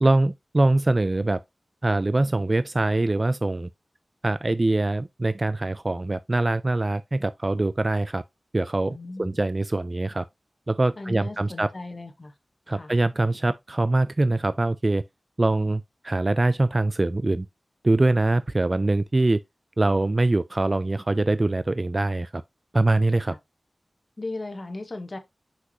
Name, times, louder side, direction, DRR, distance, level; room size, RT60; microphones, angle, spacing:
voice 1, 0.0-1.4 1.8-3.7 4.2-8.2 8.5-10.3 10.7-11.7 12.7-15.0 15.4-17.5 17.8-19.4 19.8-22.4 22.7-23.3, right 2 dB, 35° right, 0.3 m, -23 dB
voice 2, 8.9-9.4 11.0-12.3 12.7-12.9 23.3-23.4 24.2-25.2, left 2 dB, 45° left, 1.3 m, -36 dB
5.9 x 5.8 x 2.9 m
wide cardioid pair, 80°, 0 cm